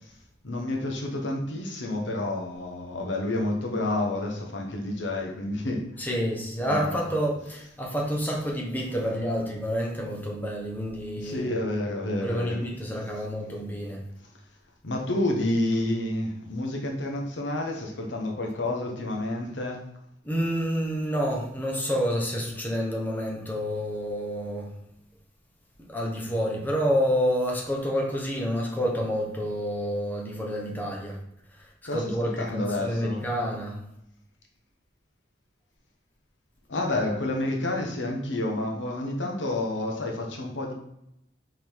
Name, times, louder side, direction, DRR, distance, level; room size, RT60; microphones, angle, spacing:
voice 1, 0.4-5.9 6.6-7.1 11.2-12.6 13.4-13.6 14.8-19.8 31.8-33.2 36.7-40.7, left 1 dB, 80° left, 1 dB, 1.1 m, -29 dB
voice 2, 6.0-11.5 12.2-14.0 20.2-24.7 25.9-31.2 31.6-31.7 31.9-33.8, equal, 10° left, -2 dB, 1.1 m, -28 dB
5.2 x 4.0 x 4.6 m, 0.79 s
head